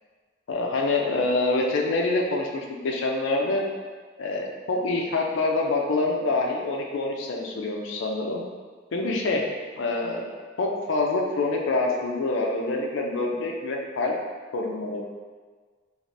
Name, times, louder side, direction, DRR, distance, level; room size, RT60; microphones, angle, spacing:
voice 1, 0.5-3.7 4.2-8.4 8.9-9.4 9.8-10.2 10.6-14.1 14.5-15.0, left 2 dB, 75° left, 0 dB, 0.4 m, -26 dB
3.3 x 2.4 x 2.5 m, 1.5 s
head